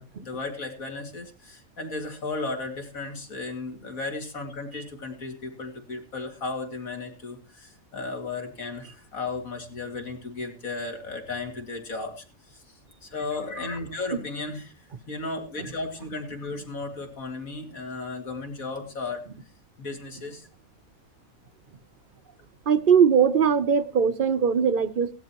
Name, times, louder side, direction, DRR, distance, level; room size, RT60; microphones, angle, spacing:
voice 1, 0.0-12.6 13.0-14.7 15.1-19.2 19.8-20.5, left 3 dB, 70° left, 2.9 m, -35 dB
voice 2, 22.7-25.1, right 7 dB, 45° right, 0.8 m, -20 dB
18.0 x 12.5 x 3.0 m
omnidirectional pair, 1.5 m